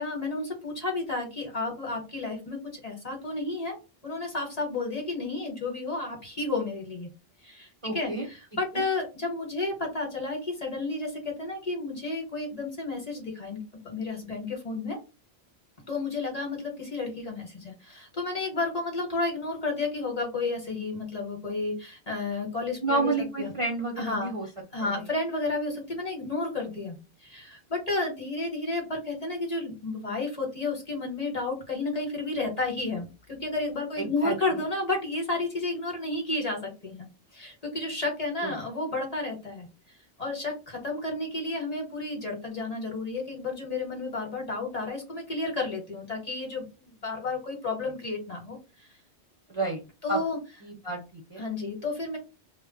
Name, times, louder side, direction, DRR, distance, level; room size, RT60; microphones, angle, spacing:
voice 1, 0.0-3.8 4.0-7.1 7.4-13.6 13.8-15.0 15.9-23.1 23.4-23.5 24.0-24.3 24.7-37.1 37.3-39.7 40.2-48.9 50.0-50.4 51.4-52.2, left 3 dB, 40° left, 1 dB, 0.9 m, -32 dB
voice 2, 7.8-8.3 8.7-8.8 22.8-24.5 24.8-25.1 34.0-34.3 38.4-38.5 49.5-49.8 50.1-50.2 50.6-51.5, right 2 dB, 35° right, -1 dB, 0.6 m, -30 dB
2.1 x 2.0 x 3.7 m, 0.29 s
omnidirectional pair, 1.1 m